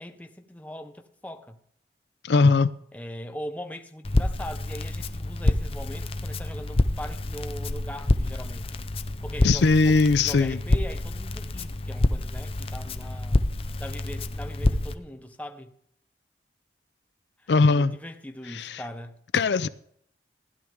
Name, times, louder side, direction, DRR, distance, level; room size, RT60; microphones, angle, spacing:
voice 1, 0.0-1.6 2.9-8.8 9.2-13.4 13.8-15.7 17.4-19.2, equal, 10° left, 0.9 m, -40 dB
voice 2, 2.2-2.7 9.4-10.6 17.5-17.9 18.5-18.8 19.3-19.7, left 3 dB, 75° left, 0.5 m, -20 dB
Crackle, 4.0-14.9, left 2 dB, 35° left, 0.6 m, -27 dB
16.0 x 11.0 x 3.6 m
head